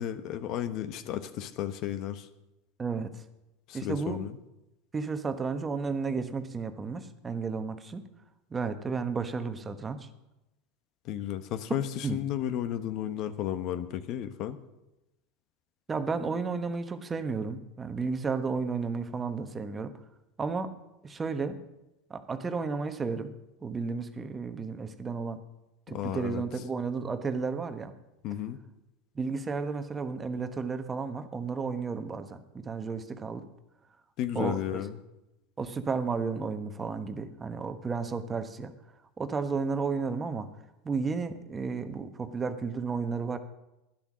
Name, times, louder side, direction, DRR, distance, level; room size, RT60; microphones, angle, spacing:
voice 1, 0.0-2.3 3.7-4.4 11.0-14.6 25.9-26.4 28.2-28.6 34.2-35.0, left 11 dB, 50° left, 11 dB, 1.0 m, -33 dB
voice 2, 2.8-3.2 3.7-4.2 4.9-8.0 8.5-10.1 12.0-12.2 15.9-19.9 20.4-20.7 21.0-21.6 22.1-23.3 23.6-25.4 25.9-27.9 29.1-33.5 34.3-34.8 35.6-38.7 39.2-40.5 40.8-43.4, right 4 dB, 20° right, 9 dB, 1.2 m, -32 dB
12.0 x 10.5 x 6.3 m, 0.96 s
hypercardioid pair, 85°, 0 cm